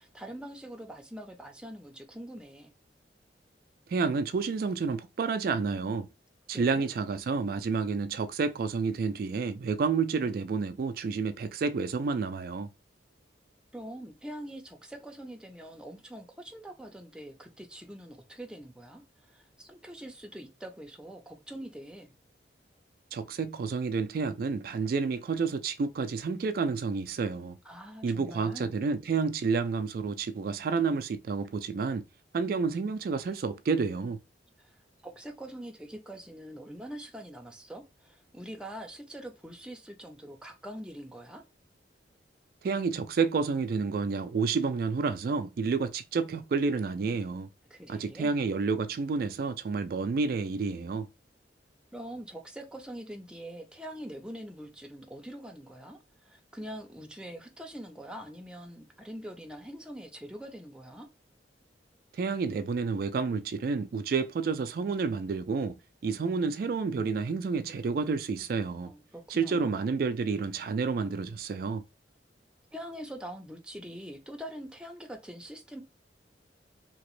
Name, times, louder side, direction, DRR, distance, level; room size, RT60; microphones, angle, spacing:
voice 1, 0.0-2.7 6.5-6.9 13.7-19.0 19.3-22.1 27.6-28.7 34.6-34.7 35.0-41.4 47.7-48.3 51.9-61.1 68.8-69.8 72.7-75.8, equal, 5° right, 0.5 m, -44 dB
voice 2, 3.9-6.1 6.5-12.7 23.1-27.6 28.0-32.0 32.3-34.2 42.6-47.5 47.9-51.1 62.1-65.8 66.0-68.9 69.3-71.8, right 4 dB, 55° right, 0.3 m, -30 dB
2.9 x 2.9 x 3.1 m
head